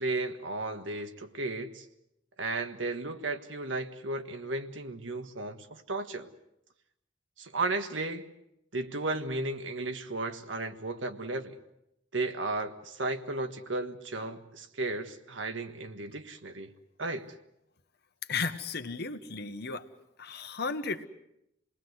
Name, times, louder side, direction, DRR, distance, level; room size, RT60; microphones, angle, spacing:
voice 1, 0.0-1.8 2.4-6.3 7.4-8.2 8.7-11.6 12.1-16.7 17.0-17.3, right 2 dB, 80° right, 1.6 m, -34 dB
voice 2, 18.3-19.8 20.2-21.1, left 4 dB, 60° left, 1.4 m, -34 dB
27.5 x 20.0 x 8.0 m
head